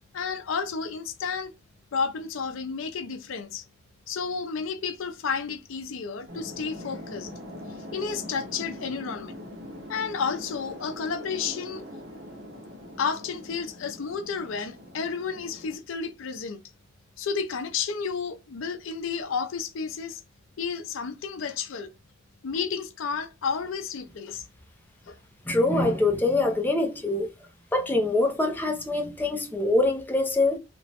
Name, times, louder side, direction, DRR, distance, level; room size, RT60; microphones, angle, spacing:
voice 1, 0.1-1.5 1.9-3.6 4.1-7.3 7.9-9.4 9.9-11.8 13.0-16.6 17.2-20.2 20.6-21.9 22.4-24.4 25.1-25.2, left 5 dB, 80° left, 0.4 m, -31 dB
sound 1, 6.3-15.8, left 1 dB, 60° right, 1.1 m, -42 dB
voice 2, 25.5-27.3 27.7-30.6, left 2 dB, 10° left, 0.4 m, -24 dB
2.9 x 2.1 x 2.8 m
head